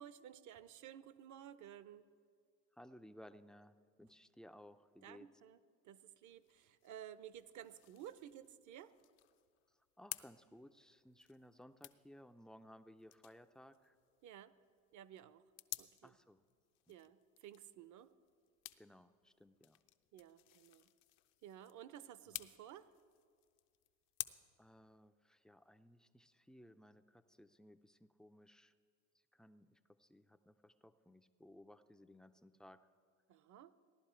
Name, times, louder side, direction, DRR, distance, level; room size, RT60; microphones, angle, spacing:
voice 1, 0.0-2.0 5.0-5.6 5.8-8.9 14.2-14.5 14.9-15.4 15.8-16.2 16.9-18.1 20.1-20.9 21.4-22.9 33.3-33.7, right 10 dB, 50° right, 16 dB, 0.7 m, -54 dB
voice 2, 2.7-5.3 9.7-14.0 16.0-16.4 18.8-19.8 22.3-22.5 24.6-28.7 29.3-32.9, left 1 dB, ahead, 9 dB, 0.3 m, -60 dB
sound 1, 6.2-24.3, left 16 dB, 70° left, 0.6 m, -54 dB
16.5 x 11.0 x 4.5 m, 2.1 s
supercardioid pair, 80°, 39 cm